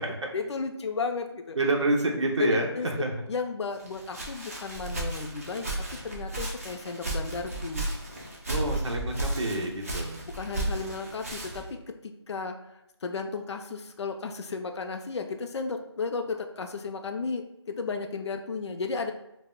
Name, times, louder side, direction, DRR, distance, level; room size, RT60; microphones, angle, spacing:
voice 1, 0.3-1.6 2.4-2.5 2.8-2.9 3.3-7.9 10.3-11.8 12.0-19.1, left 4 dB, 70° left, 5 dB, 0.4 m, -34 dB
voice 2, 1.6-3.2 8.5-10.2, right 2 dB, 80° right, 1 dB, 0.6 m, -28 dB
Walk footsteps, 3.8-11.7, right 1 dB, 30° right, 0.5 m, -34 dB
2.1 x 2.0 x 3.5 m, 0.89 s
figure-of-eight pair, 170°, 15 cm